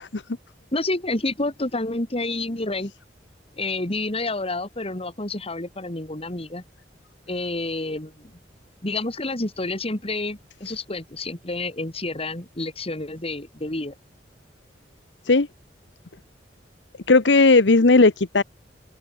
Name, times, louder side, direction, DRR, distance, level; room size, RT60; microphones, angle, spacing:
voice 1, 0.7-2.9 3.6-6.6 7.3-8.3 8.8-14.0, left 2 dB, 35° left, 2.6 m, -29 dB
voice 2, 17.1-18.4, left 3 dB, 75° left, 1.1 m, -16 dB
open air
head